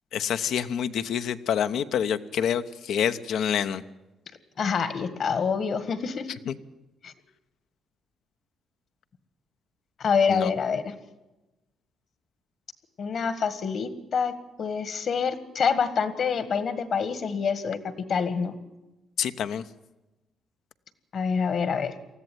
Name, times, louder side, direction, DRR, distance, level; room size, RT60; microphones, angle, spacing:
voice 1, 0.1-3.8 6.5-6.6 10.3-10.5 19.2-19.6, left 8 dB, 75° left, 10 dB, 0.9 m, -27 dB
voice 2, 4.6-6.3 7.0-7.1 10.0-10.9 13.0-18.6 21.1-21.9, left 6 dB, 55° left, 14 dB, 1.7 m, -26 dB
19.5 x 14.0 x 9.3 m, 1.0 s
cardioid pair, 90°, 0 cm